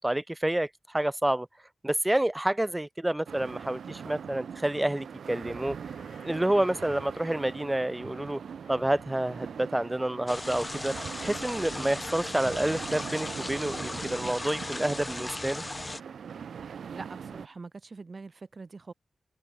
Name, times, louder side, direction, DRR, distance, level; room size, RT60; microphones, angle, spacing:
voice 1, 0.0-1.5 1.8-5.8 6.2-8.4 8.7-10.9 11.2-15.6, right 1 dB, 15° right, 0.8 m, -28 dB
sound 1, 3.3-17.5, right 7 dB, 85° right, 1.2 m, -41 dB
sound 2, 5.8-10.5, left 6 dB, 80° left, 4.0 m, -57 dB
sound 3, 10.3-16.0, left 2 dB, 30° left, 1.6 m, -37 dB
voice 2, 16.9-18.9, right 4 dB, 55° right, 1.8 m, -43 dB
cardioid pair, 45°, 0 cm